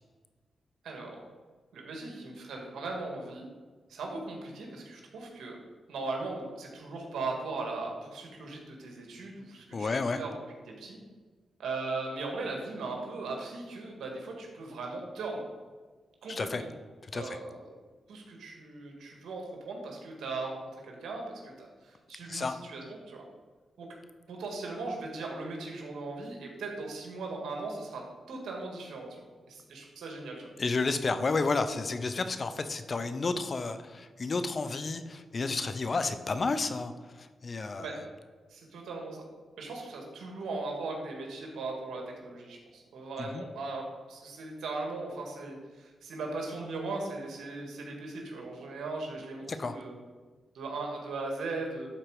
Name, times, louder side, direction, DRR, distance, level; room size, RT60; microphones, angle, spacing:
voice 1, 0.8-1.2 1.7-3.4 3.9-5.6 5.9-10.3 10.8-11.0 11.6-15.4 16.2-16.7 17.1-17.6 18.1-23.3 23.8-23.9 24.3-28.0 28.3-29.2 29.5-30.5 37.8-38.0 38.5-39.2 39.6-49.9 50.5-51.9, right 3 dB, 85° right, 1 dB, 1.9 m, -38 dB
voice 2, 9.7-10.2 16.3-16.6 17.1-17.4 22.3-22.6 30.6-36.9 37.2-37.9 43.2-43.4 49.4-49.7, left 3 dB, 45° left, 10 dB, 0.7 m, -31 dB
11.0 x 4.4 x 4.9 m, 1.4 s
cardioid pair, 70°, 0 cm